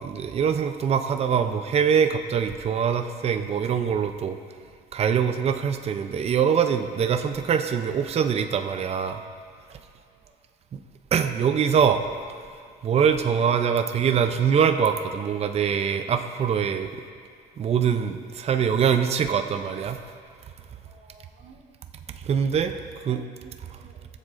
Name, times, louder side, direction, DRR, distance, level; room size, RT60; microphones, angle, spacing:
voice 1, 0.0-4.4 4.9-9.2 9.7-9.8 10.7-10.8 11.1-12.0 12.4-17.0 17.6-20.0 22.2-22.7 23.0-23.2 23.7-23.8, right 7 dB, 40° right, 7 dB, 0.5 m, -23 dB
voice 2, 10.0-10.4 20.8-21.6 23.1-23.5 23.8-24.1, right 5 dB, 60° right, -1 dB, 1.8 m, -53 dB
16.0 x 7.4 x 2.5 m, 2.2 s
cardioid pair, 110°, 17 cm